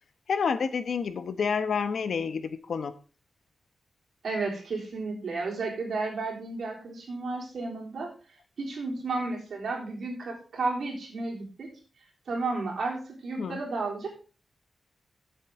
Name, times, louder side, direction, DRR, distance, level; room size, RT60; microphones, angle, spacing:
voice 1, 0.3-2.9 13.4-13.6, left 6 dB, 70° left, 1.1 m, -29 dB
voice 2, 4.2-8.1 8.6-11.7 12.3-14.1, right 3 dB, 70° right, 4.0 m, -32 dB
15.0 x 7.6 x 3.7 m
wide cardioid pair, 180°, 0 cm